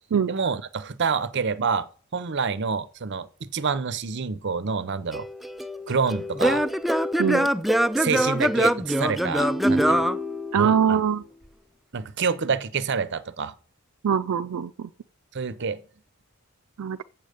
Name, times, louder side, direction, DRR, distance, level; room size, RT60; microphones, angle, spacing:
voice 1, 0.3-1.9 2.1-5.3 5.9-6.7 8.0-10.1 10.6-11.0 11.9-13.5 15.3-15.8, right 5 dB, 55° right, 0.7 m, -27 dB
Singing / Plucked string instrument, 5.1-11.0, equal, ahead, 0.4 m, -24 dB
voice 2, 10.5-11.2 14.0-14.9 16.8-17.0, right 7 dB, 90° right, 0.4 m, -23 dB
7.8 x 7.4 x 5.1 m
head